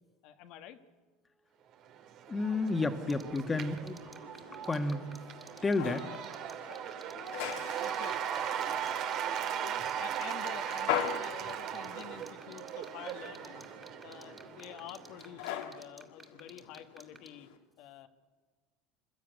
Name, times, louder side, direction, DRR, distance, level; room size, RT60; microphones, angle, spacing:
voice 1, 0.2-0.8 7.4-13.7 14.0-17.5 17.8-18.1, left 10 dB, 65° left, 7 dB, 1.5 m, -49 dB
Cheering / Applause / Crowd, 1.9-15.3, right 9 dB, 55° right, 2.1 m, -38 dB
voice 2, 2.3-4.0 4.7-5.2 5.6-6.1, left 3 dB, 20° left, 7 dB, 1.8 m, -31 dB
sound 1, 3.1-17.3, right 2 dB, 10° right, 2.6 m, -51 dB
sound 2, 3.8-17.6, left 9 dB, 85° left, 2.6 m, -42 dB
27.5 x 12.5 x 9.4 m, 1.4 s
supercardioid pair, 105°, 0 cm